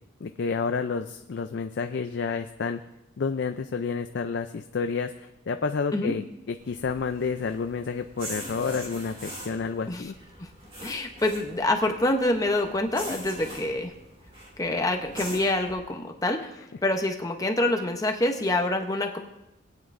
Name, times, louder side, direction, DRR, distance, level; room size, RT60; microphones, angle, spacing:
voice 1, 0.2-2.8 3.2-6.2 6.5-10.1, left 5 dB, 55° left, 7 dB, 0.4 m, -30 dB
sound 1, 6.6-15.7, equal, 25° right, 2.0 m, -42 dB
voice 2, 10.8-13.9 14.6-19.2, left 1 dB, 15° left, 4 dB, 0.7 m, -26 dB
20.5 x 9.1 x 2.5 m, 0.92 s
head